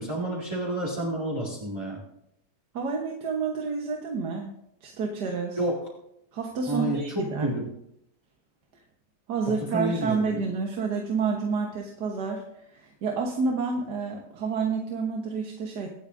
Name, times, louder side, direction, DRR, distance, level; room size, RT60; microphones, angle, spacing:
voice 1, 0.0-2.0 5.6-5.8 6.7-7.7 9.5-10.4, right 1 dB, 15° right, -6 dB, 2.2 m, -30 dB
voice 2, 2.7-4.5 4.8-5.6 6.3-7.5 9.3-15.9, right 5 dB, 80° right, 1 dB, 1.8 m, -29 dB
24.5 x 8.4 x 2.6 m, 0.77 s
omnidirectional pair, 1.8 m